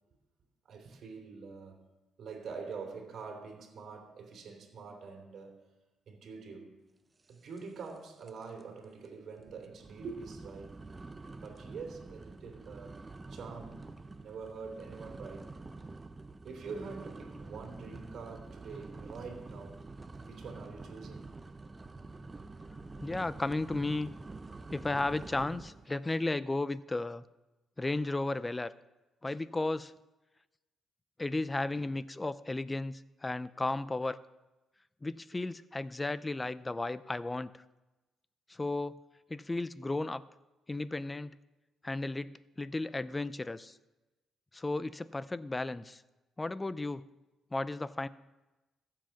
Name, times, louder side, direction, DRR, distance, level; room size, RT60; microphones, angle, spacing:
voice 1, 0.6-1.9 2.2-5.6 6.1-6.8 7.3-10.8 11.4-15.5 16.4-19.8 20.2-21.3, right 5 dB, 60° right, 3 dB, 3.2 m, -45 dB
sound 1, 7.6-8.0 8.2-8.6 9.0-9.1 9.7-25.9, right 3 dB, 25° right, 0.7 m, -47 dB
voice 2, 23.0-24.1 24.7-27.2 27.8-28.7 29.2-29.9 31.2-34.2 35.0-37.5 38.5-39.0 39.3-40.2 40.7-41.4 41.8-43.8 44.5-46.0 46.4-47.0 47.5-48.1, left 2 dB, 20° left, 16 dB, 0.5 m, -34 dB
15.0 x 7.7 x 5.8 m, 1.1 s
cardioid pair, 90°, 0 cm